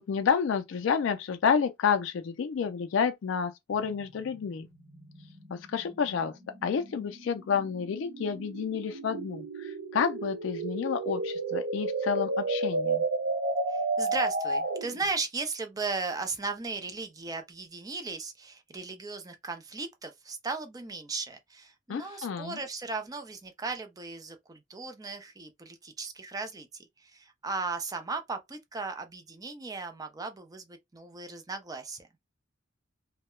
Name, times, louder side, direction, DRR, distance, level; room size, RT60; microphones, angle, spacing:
voice 1, 0.0-4.7 5.5-13.0 21.9-22.6, left 6 dB, 70° left, 0.3 m, -30 dB
sound 1, 3.7-15.0, right 3 dB, 90° right, 1.1 m, -33 dB
voice 2, 13.7-32.1, right 3 dB, 20° right, 0.4 m, -36 dB
2.2 x 2.1 x 2.9 m
head